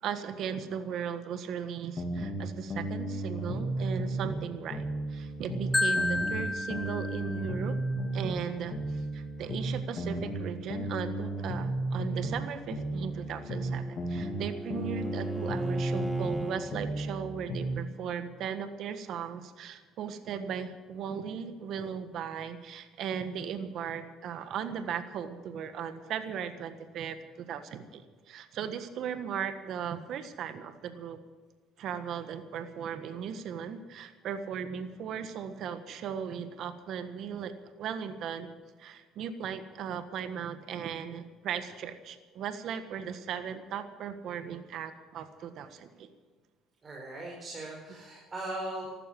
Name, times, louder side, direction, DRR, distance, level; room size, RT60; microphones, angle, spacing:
voice 1, 0.0-7.8 8.1-31.2 31.8-38.5 38.8-46.1, right 7 dB, 65° right, 10 dB, 1.5 m, -37 dB
sound 1, 2.0-4.4 4.7-8.4 8.7-12.4 12.7-16.4 16.7-17.8, right 1 dB, 45° left, 2.9 m, -34 dB
Marimba xylophone, 5.7-7.8, left 2 dB, 15° left, 0.6 m, -31 dB
Bowed string instrument, 13.1-16.8, equal, 10° right, 1.9 m, -38 dB
voice 2, 46.8-49.0, right 1 dB, 30° right, -2 dB, 4.8 m, -39 dB
14.5 x 13.0 x 7.6 m, 1.4 s
supercardioid pair, 85°, 0 cm